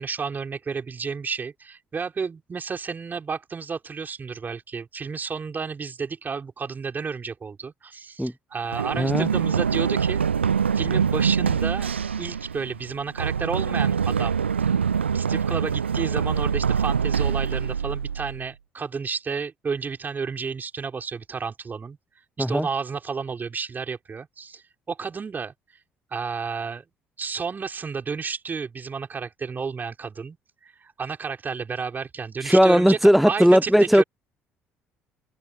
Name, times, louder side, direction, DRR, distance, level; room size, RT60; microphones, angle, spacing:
voice 1, 0.0-10.2 10.7-11.9 12.2-14.7 15.0-22.0 22.4-25.8 26.1-26.8 27.2-30.4 30.6-33.0 33.2-34.0, right 5 dB, 30° right, 5.6 m, -31 dB
Run, 8.7-18.5, right 7 dB, 80° right, 1.0 m, -24 dB
voice 2, 8.9-9.3 22.4-22.7 32.4-34.0, equal, ahead, 0.5 m, -17 dB
figure-of-eight pair, 55°, 6 cm